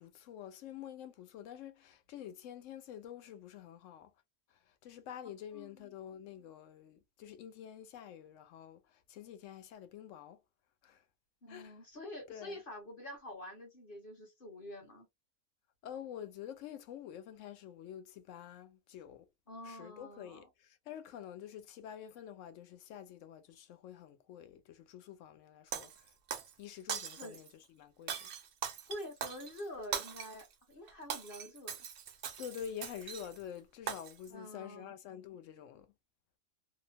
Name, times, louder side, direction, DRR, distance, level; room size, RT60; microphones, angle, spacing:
voice 1, 0.0-4.1 4.5-10.4 10.8-11.0 11.5-11.7 12.3-12.6 15.8-19.3 19.6-26.1 26.6-28.3 32.4-35.9, left 9 dB, 70° left, 0.9 m, -48 dB
voice 2, 5.5-5.9 11.4-15.1 19.5-20.5 27.2-27.4 28.9-31.8 34.3-34.9, left 1 dB, 45° left, 1.0 m, -47 dB
Shatter, 25.7-26.5 26.9-27.5 28.1-30.5 30.9-33.4 33.9-34.3, right 8 dB, 65° right, 0.7 m, -41 dB
2.8 x 2.1 x 2.7 m
omnidirectional pair, 1.5 m